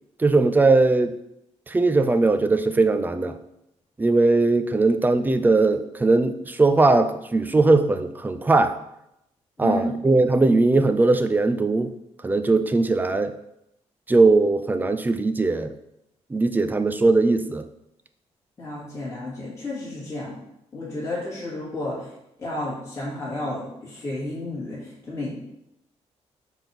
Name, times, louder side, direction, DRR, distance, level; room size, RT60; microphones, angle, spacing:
voice 1, 0.2-1.1 1.7-3.4 4.0-8.8 9.6-11.9 12.2-13.4 14.1-15.7 16.3-17.6, right 3 dB, 15° right, 9 dB, 0.4 m, -19 dB
voice 2, 18.6-20.3 20.7-22.1 22.4-25.3, left 2 dB, 25° left, -8 dB, 2.3 m, -32 dB
5.9 x 3.5 x 5.9 m, 0.81 s
cardioid pair, 140°, 12 cm